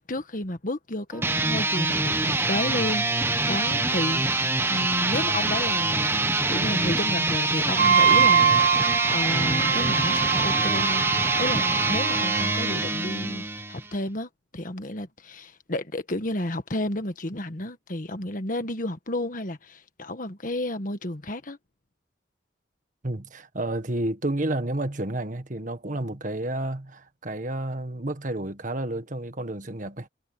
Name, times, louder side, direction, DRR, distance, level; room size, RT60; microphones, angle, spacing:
voice 1, 0.0-6.2 6.5-11.1 11.4-21.6, left 1 dB, 45° left, 1.6 m, -32 dB
sound 1, 1.1-13.9, right 2 dB, 15° right, 1.0 m, -25 dB
Wind instrument woodwind instrument, 7.8-12.7, right 7 dB, 65° right, 1.5 m, -23 dB
voice 2, 23.0-30.1, right 1 dB, 45° right, 1.6 m, -30 dB
head